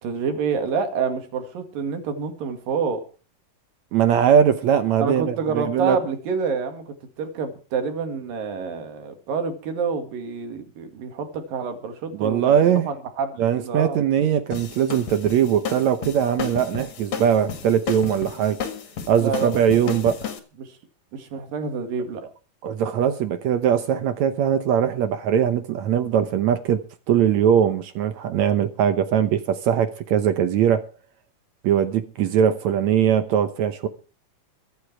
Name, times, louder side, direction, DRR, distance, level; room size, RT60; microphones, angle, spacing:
voice 1, 0.0-3.0 5.0-14.0 19.2-19.8 20.6-20.8 21.1-22.3, right 5 dB, 85° right, 3.9 m, -28 dB
voice 2, 3.9-6.0 12.2-12.9 13.4-18.6 19.1-20.3 22.6-30.8 31.6-33.9, right 9 dB, 70° right, 2.0 m, -21 dB
sound 1, 14.5-20.4, left 7 dB, 55° left, 3.0 m, -33 dB
23.0 x 8.3 x 4.6 m
omnidirectional pair, 3.9 m